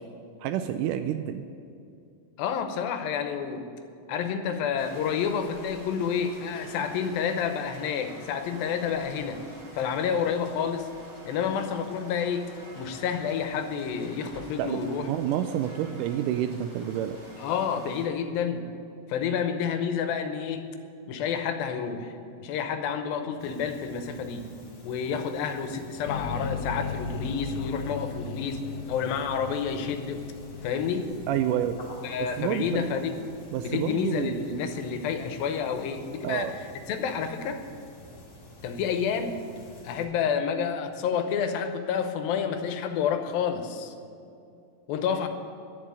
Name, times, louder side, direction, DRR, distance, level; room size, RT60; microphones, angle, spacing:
voice 1, 0.4-1.4 14.6-14.8 15.1-17.2 31.3-31.8 32.4-32.9 33.5-34.5 36.2-36.6, right 11 dB, 85° right, 8 dB, 1.8 m, -28 dB
voice 2, 2.4-3.7 4.1-9.4 9.7-10.9 11.3-15.1 17.4-18.7 19.1-20.7 21.1-24.5 24.8-30.3 30.6-31.1 32.0-33.2 33.6-36.6 36.9-37.6 38.6-39.4 39.8-44.0 44.9-45.3, left 7 dB, 80° left, 7 dB, 2.7 m, -29 dB
sound 1, 4.8-18.1, right 1 dB, 25° right, 0.6 m, -48 dB
sound 2, 23.4-40.0, left 1 dB, 35° left, 3.1 m, -49 dB
sound 3, 26.0-33.2, left 4 dB, 65° left, 1.6 m, -37 dB
11.0 x 7.5 x 9.8 m, 2.5 s
omnidirectional pair, 4.1 m